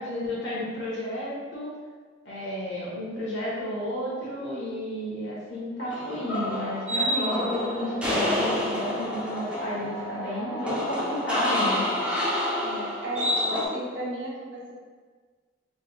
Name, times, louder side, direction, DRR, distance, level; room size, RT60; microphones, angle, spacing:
voice 1, 0.0-1.7 2.2-11.9, left 1 dB, 70° left, -8 dB, 1.3 m, -32 dB
sound 1, 4.8-11.3, right 2 dB, 15° left, 0.9 m, -41 dB
sound 2, 5.9-13.7, left 1 dB, 5° right, 0.5 m, -28 dB
voice 2, 12.6-14.7, equal, 75° right, -4 dB, 0.8 m, -34 dB
3.7 x 3.3 x 2.2 m, 1.5 s
head